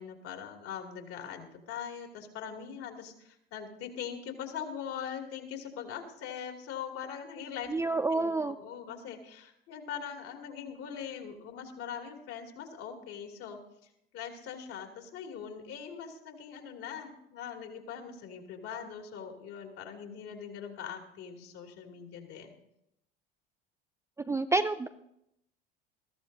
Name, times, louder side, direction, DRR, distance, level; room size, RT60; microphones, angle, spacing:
voice 1, 0.0-22.5, left 8 dB, 50° left, 3 dB, 2.7 m, -42 dB
voice 2, 7.7-8.6 24.2-24.9, right 3 dB, 10° right, 9 dB, 0.4 m, -28 dB
20.5 x 14.0 x 2.7 m, 0.79 s
figure-of-eight pair, 70°, 29 cm